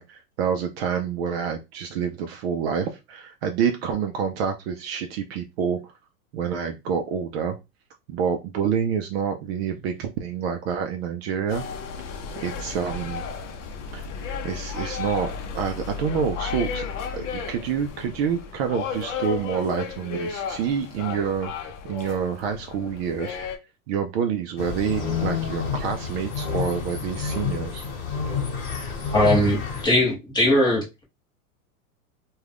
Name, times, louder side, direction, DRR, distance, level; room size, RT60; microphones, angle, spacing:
voice 1, 0.0-5.9 6.3-7.6 8.1-11.6 12.4-13.2 13.9-14.1 14.4-16.9 17.1-21.5 21.8-23.4 23.9-27.9, right 7 dB, 45° right, 0.4 m, -27 dB
sound 1, 11.5-23.6, left 5 dB, 55° left, 0.7 m, -34 dB
sound 2, 24.6-29.9, left 6 dB, 35° left, 1.1 m, -29 dB
voice 2, 29.1-31.0, left 1 dB, 10° left, 0.7 m, -20 dB
2.4 x 2.3 x 3.3 m
hypercardioid pair, 125°, 45 cm